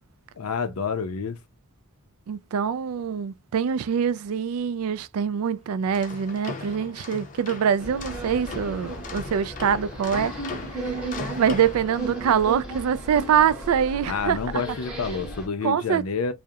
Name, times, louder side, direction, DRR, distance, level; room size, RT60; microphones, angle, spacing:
voice 1, 0.4-1.4 14.1-16.3, left 5 dB, 90° left, 0.5 m, -28 dB
voice 2, 2.3-10.3 10.7-11.1 11.4-14.4 15.6-16.0, right 7 dB, 80° right, 0.3 m, -24 dB
sound 1, 5.8-12.5, left 4 dB, 40° left, 0.5 m, -38 dB
sound 2, 7.8-15.5, right 2 dB, 5° right, 0.9 m, -35 dB
2.3 x 2.0 x 2.7 m
head